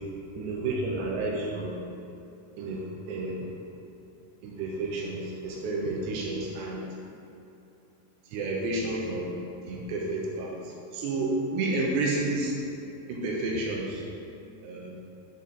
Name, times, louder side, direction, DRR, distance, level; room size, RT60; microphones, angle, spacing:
voice 1, 0.4-1.7 2.6-3.5 4.4-6.9 8.3-9.3 9.7-12.6 13.1-14.0 14.6-15.0, right 2 dB, 80° right, -2 dB, 2.6 m, -31 dB
7.4 x 4.2 x 3.9 m, 2.7 s
omnidirectional pair, 5.5 m